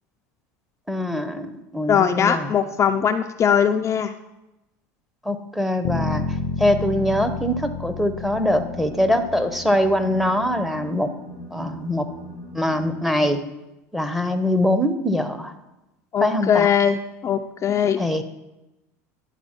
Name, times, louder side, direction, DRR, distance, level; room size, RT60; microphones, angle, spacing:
voice 1, 0.9-2.5 5.3-6.2 6.6-11.1 11.5-12.1 12.5-13.4 13.9-15.5 16.2-16.7 18.0-18.2, left 1 dB, ahead, 7 dB, 0.7 m, -23 dB
voice 2, 1.9-4.1 16.1-18.0, left 8 dB, 35° left, 6 dB, 0.4 m, -20 dB
sound 1, 5.8-9.9, left 5 dB, 70° left, 0.6 m, -30 dB
sound 2, 8.3-13.3, left 2 dB, 45° right, 1.2 m, -39 dB
11.0 x 4.2 x 4.4 m, 0.96 s
hypercardioid pair, 95°, 9 cm